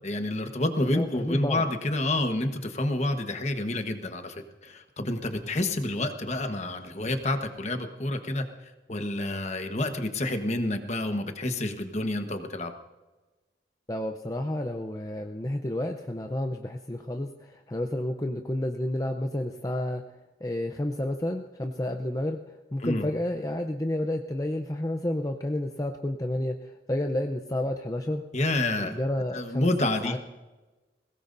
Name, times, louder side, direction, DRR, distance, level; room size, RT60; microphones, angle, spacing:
voice 1, 0.0-4.3 4.6-8.5 8.9-12.7 22.8-23.1 28.3-29.0 29.3-30.2, left 1 dB, 40° left, 6 dB, 1.2 m, -28 dB
voice 2, 0.9-1.6 13.9-20.0 20.4-28.2 28.8-29.7 30.0-30.2, left 1 dB, 20° left, 4 dB, 0.6 m, -30 dB
21.5 x 18.0 x 2.6 m, 1.2 s
head